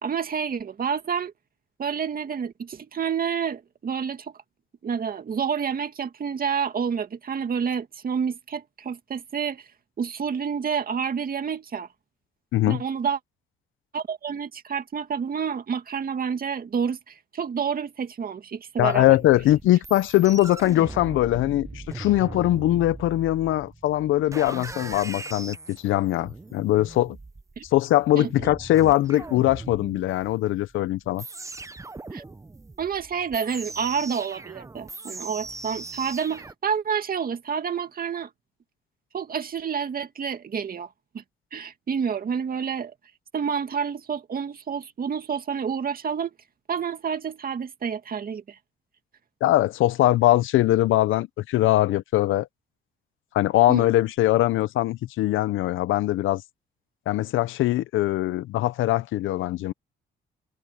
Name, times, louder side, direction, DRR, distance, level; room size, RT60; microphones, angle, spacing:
voice 1, 0.0-1.3 1.8-4.3 4.8-9.6 10.0-11.9 12.6-13.2 13.9-19.2 27.6-27.7 28.2-28.5 32.1-32.2 32.8-38.3 39.1-40.9 41.1-41.2 41.5-42.9 43.3-46.3 46.7-48.6 53.7-53.9, right 7 dB, 45° right, 2.2 m, -29 dB
voice 2, 12.5-12.8 18.8-27.2 27.7-31.2 49.4-52.5 53.3-56.4 57.1-59.7, left 15 dB, 80° left, 0.7 m, -21 dB
sound 1, 18.9-36.5, right 3 dB, 15° right, 0.8 m, -40 dB
cardioid pair, 90°, 20 cm